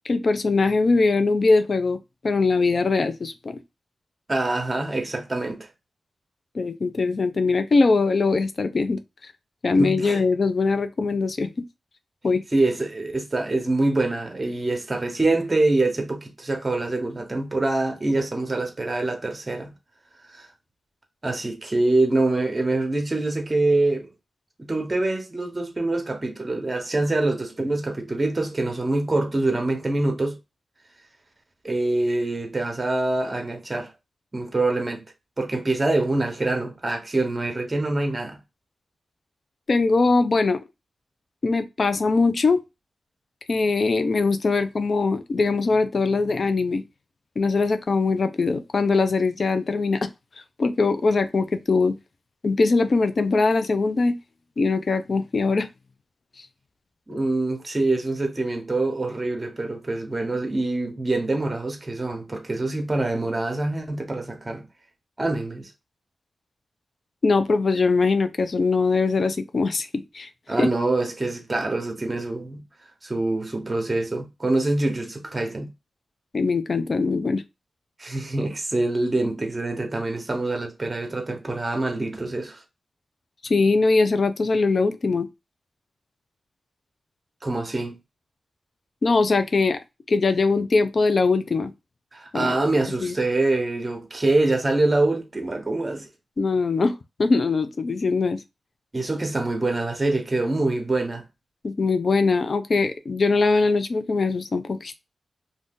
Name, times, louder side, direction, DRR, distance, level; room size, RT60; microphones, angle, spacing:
voice 1, 0.0-2.0 2.2-3.6 6.5-9.0 9.6-11.5 12.2-12.4 39.7-40.6 41.4-42.6 43.5-46.8 47.4-50.1 50.6-52.0 52.4-54.1 54.6-55.7 67.2-69.9 70.1-70.3 70.6-70.7 76.3-77.4 83.4-85.3 89.0-89.8 90.1-91.7 92.3-92.6 93.0-93.1 96.4-98.4 101.6-105.0, left 3 dB, 60° left, 0.4 m, -21 dB
voice 2, 4.3-5.7 9.8-10.2 12.5-19.7 20.3-20.5 21.2-24.1 24.6-30.4 31.6-33.9 34.3-35.0 35.4-38.4 57.1-64.7 65.2-65.7 70.5-72.6 73.0-75.7 78.0-82.6 87.4-88.0 92.1-96.1 98.9-101.2, right 2 dB, 30° right, 1.0 m, -25 dB
2.6 x 2.4 x 3.6 m
cardioid pair, 55°, 0 cm